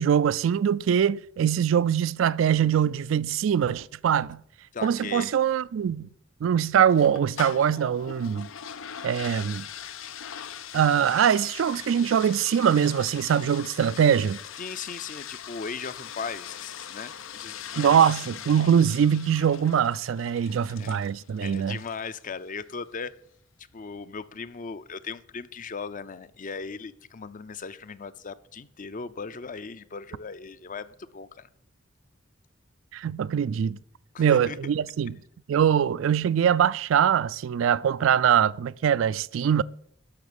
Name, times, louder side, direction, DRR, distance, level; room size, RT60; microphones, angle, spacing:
voice 1, 0.0-4.4 4.8-6.1 6.4-8.5 9.0-9.7 10.7-14.4 17.8-21.8 32.9-33.8 34.2-35.2 35.5-39.6, right 8 dB, 70° right, 0.3 m, -23 dB
voice 2, 4.7-5.3 14.6-18.0 20.7-21.0 21.4-23.1 23.7-31.5 34.1-34.6, left 5 dB, 40° left, 0.6 m, -38 dB
sound 1, 6.9-22.1, left 9 dB, 80° left, 0.6 m, -41 dB
12.5 x 5.8 x 6.9 m
head